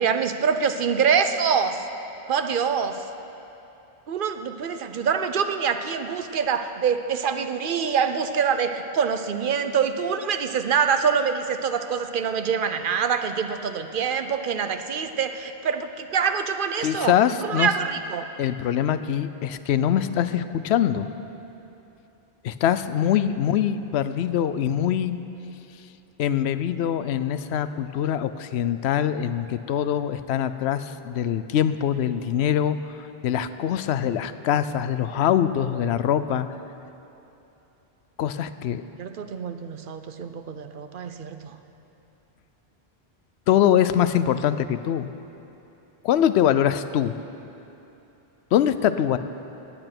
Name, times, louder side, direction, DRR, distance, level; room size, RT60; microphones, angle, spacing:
voice 1, 0.0-1.9 2.3-3.0 4.1-18.3 39.0-41.6, right 6 dB, 55° right, 8 dB, 0.9 m, -25 dB
voice 2, 16.8-17.7 18.4-21.1 22.4-25.2 26.2-36.5 38.2-38.8 43.5-45.1 46.0-47.1 48.5-49.2, left 10 dB, 80° left, 12 dB, 0.8 m, -23 dB
17.5 x 8.9 x 6.0 m, 2.9 s
omnidirectional pair, 1.1 m